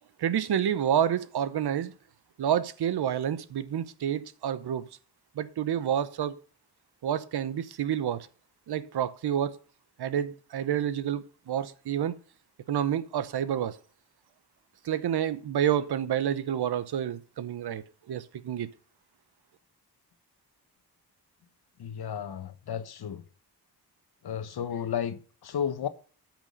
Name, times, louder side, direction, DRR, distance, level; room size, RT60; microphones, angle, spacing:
voice 1, 0.2-1.9 2.4-4.8 5.4-6.4 7.0-8.3 8.7-9.5 10.0-12.1 12.7-13.8 14.8-18.7, right 9 dB, 80° right, 0.9 m, -29 dB
voice 2, 21.8-23.2 24.2-25.9, left 8 dB, 75° left, 1.2 m, -33 dB
13.5 x 6.2 x 5.4 m
wide cardioid pair, 155°, 39 cm